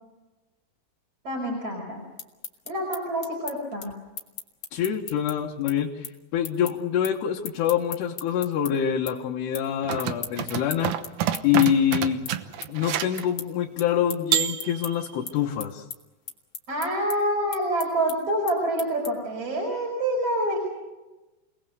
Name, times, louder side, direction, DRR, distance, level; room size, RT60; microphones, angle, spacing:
voice 1, 1.2-2.0 2.7-3.9 16.7-20.6, right 1 dB, 35° right, -2 dB, 5.8 m, -27 dB
sound 1, 2.0-8.7 9.1-9.7 10.0-19.4, left 7 dB, 50° left, 2.1 m, -38 dB
voice 2, 4.7-10.9 11.4-12.3 12.7-15.8, left 9 dB, 75° left, -1 dB, 3.4 m, -25 dB
sound 2, 9.8-13.3 14.3-15.1, right 11 dB, 85° right, 1.7 m, -28 dB
28.5 x 19.0 x 6.8 m, 1.1 s
omnidirectional pair, 5.1 m